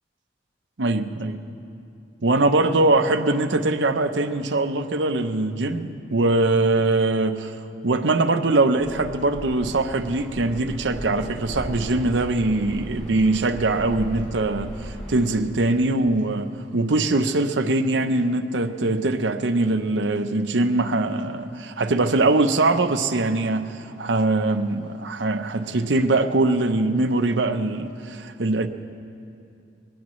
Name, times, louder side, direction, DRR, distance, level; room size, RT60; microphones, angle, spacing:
voice 1, 0.8-1.4 2.2-7.6 7.8-28.7, right 2 dB, 85° right, 0.8 m, -22 dB
sound 1, 8.8-15.4, equal, 5° left, 4.1 m, -37 dB
22.5 x 17.5 x 3.2 m
head